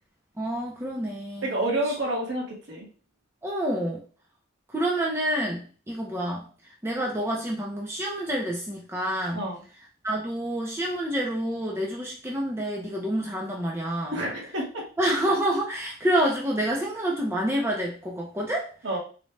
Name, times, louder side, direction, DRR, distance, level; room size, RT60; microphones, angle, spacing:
voice 1, 0.4-1.9 3.4-4.0 4.7-6.5 6.8-9.4 10.0-14.2 15.0-18.7, right 1 dB, 15° right, -2 dB, 0.6 m, -28 dB
voice 2, 1.4-2.9 9.3-9.6 14.1-14.8 18.8-19.0, right 1 dB, 65° right, -2 dB, 1.4 m, -29 dB
4.0 x 2.3 x 3.2 m, 0.38 s
head